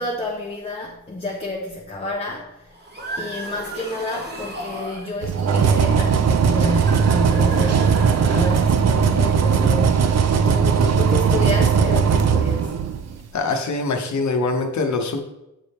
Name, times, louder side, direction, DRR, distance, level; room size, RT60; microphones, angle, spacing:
voice 1, 0.0-2.7 3.2-12.7, left 2 dB, 20° left, -1 dB, 0.6 m, -30 dB
sound 1, 2.7-5.1 6.5-9.0, right 1 dB, 35° right, 1.0 m, -34 dB
sound 2, 5.2-13.2, right 6 dB, 60° right, 0.5 m, -18 dB
voice 2, 13.3-15.2, left 3 dB, 70° left, 4 dB, 0.8 m, -23 dB
8.0 x 3.4 x 4.1 m, 0.92 s
wide cardioid pair, 180°, 30 cm